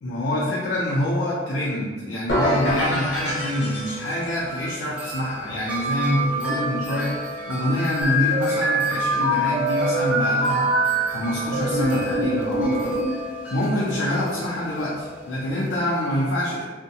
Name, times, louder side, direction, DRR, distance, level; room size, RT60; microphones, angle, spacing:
voice 1, 0.0-10.8 11.1-13.0 13.5-16.6, left 1 dB, 85° left, -5 dB, 0.5 m, -26 dB
sound 1, 2.3-4.4, left 1 dB, 65° left, 0.8 m, -25 dB
Wind chime, 2.5-15.8, right 2 dB, 10° right, 0.4 m, -33 dB
sound 2, 8.0-11.0 11.5-13.1, right 1 dB, 90° right, 0.6 m, -23 dB
2.6 x 2.1 x 2.7 m, 1.4 s
head